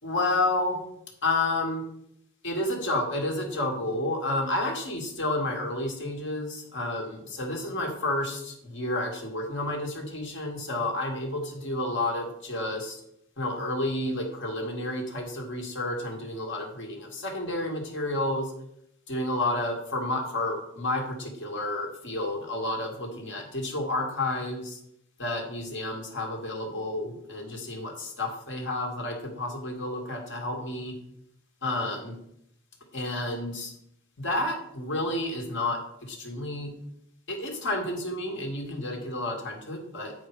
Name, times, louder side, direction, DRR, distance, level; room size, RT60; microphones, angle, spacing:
voice 1, 0.0-0.8 1.2-1.8 2.4-13.0 13.4-18.5 19.1-24.8 25.2-30.9 31.6-32.1 32.9-33.7 34.2-36.7 37.3-40.1, left 2 dB, 60° left, 1 dB, 2.0 m, -30 dB
9.1 x 4.7 x 4.7 m, 0.75 s
head